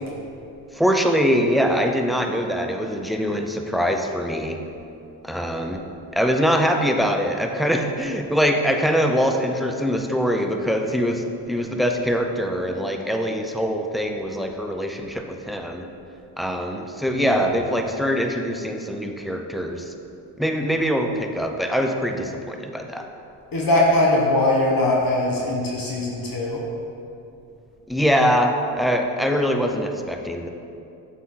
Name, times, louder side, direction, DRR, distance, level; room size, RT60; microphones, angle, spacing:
voice 1, 0.7-4.6 5.2-5.8 6.1-15.8 16.4-19.9 20.4-23.1 27.9-30.5, equal, ahead, 3 dB, 0.5 m, -23 dB
voice 2, 17.1-17.6 23.5-26.6, left 1 dB, 45° left, -3 dB, 1.2 m, -21 dB
7.3 x 4.3 x 3.7 m, 2.6 s
supercardioid pair, 60°, 49 cm